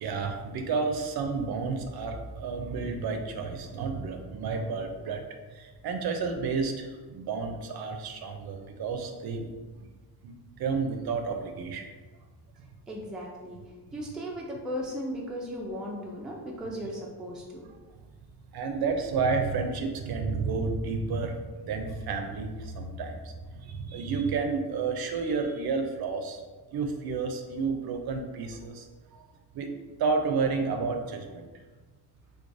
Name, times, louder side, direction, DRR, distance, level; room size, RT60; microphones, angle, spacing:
voice 1, 0.0-5.3 5.5-9.5 10.2-11.8 18.5-26.4 26.7-28.9 29.1-29.2 29.5-29.7 30.0-31.5, right 4 dB, 70° right, 5 dB, 0.5 m, -31 dB
voice 2, 12.9-13.6 13.9-17.7, equal, ahead, -2 dB, 0.3 m, -36 dB
4.5 x 2.3 x 2.5 m, 1.3 s
wide cardioid pair, 170°, 39 cm